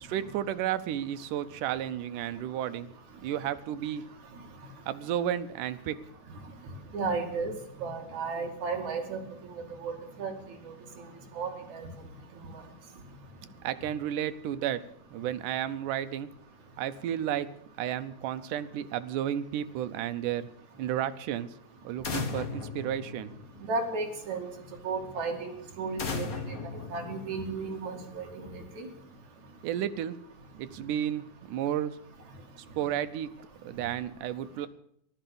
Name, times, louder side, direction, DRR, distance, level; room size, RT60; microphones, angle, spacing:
voice 1, 0.0-2.9 3.2-4.0 4.9-6.0 13.6-14.9 15.1-16.3 16.8-17.5 17.8-20.5 20.8-21.5 21.8-23.3 29.6-30.2 30.6-32.0 32.8-33.3 33.6-34.7, right 10 dB, 80° right, 11 dB, 2.3 m, -32 dB
voice 2, 6.9-7.5 7.8-9.2 9.8-9.9 10.2-10.3 11.3-11.9 23.7-24.5 24.8-26.3 26.9-28.9, right 4 dB, 60° right, 1 dB, 3.6 m, -33 dB
sound 1, 22.0-23.8 26.0-27.8, left 4 dB, 50° left, 1.1 m, -36 dB
15.0 x 12.0 x 7.0 m, 0.71 s
omnidirectional pair, 3.8 m